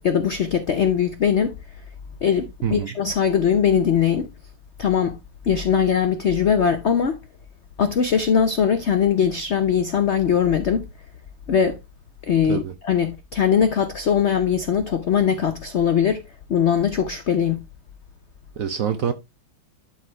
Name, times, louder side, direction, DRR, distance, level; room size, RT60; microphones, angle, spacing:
voice 1, 0.0-1.6 2.2-4.3 4.8-5.2 5.4-7.2 7.8-10.9 11.5-11.8 12.3-16.2 16.5-17.6, left 7 dB, 85° left, 0.6 m, -20 dB
voice 2, 18.6-19.1, right 8 dB, 60° right, 0.9 m, -25 dB
11.5 x 4.1 x 3.2 m
omnidirectional pair, 2.2 m